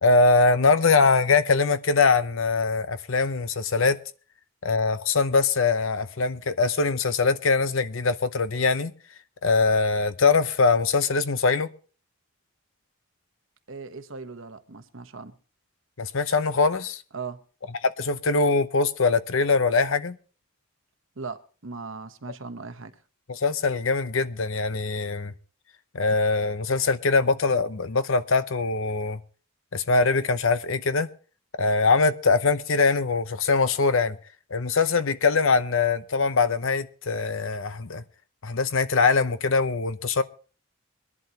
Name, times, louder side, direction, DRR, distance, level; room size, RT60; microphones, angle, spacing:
voice 1, 0.0-4.0 4.6-8.9 9.4-11.7 16.0-17.0 17.8-20.2 23.3-25.3 25.9-29.2 29.7-31.1 31.6-34.2 34.5-38.0 38.4-40.2, left 4 dB, 60° left, 0.8 m, -22 dB
voice 2, 13.7-15.3 17.1-17.4 21.2-22.9, right 4 dB, 60° right, 1.0 m, -38 dB
23.0 x 11.0 x 2.9 m
head